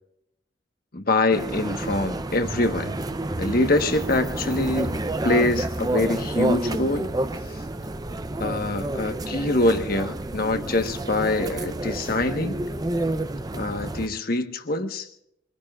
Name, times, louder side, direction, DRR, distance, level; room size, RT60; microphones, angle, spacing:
voice 1, 0.9-2.9 3.4-4.9 5.2-7.1 8.4-12.6 13.5-15.1, left 2 dB, 50° left, 7 dB, 1.3 m, -24 dB
sound 1, 1.3-14.1, right 2 dB, 20° right, 0.6 m, -29 dB
24.0 x 22.0 x 2.4 m, 0.76 s
head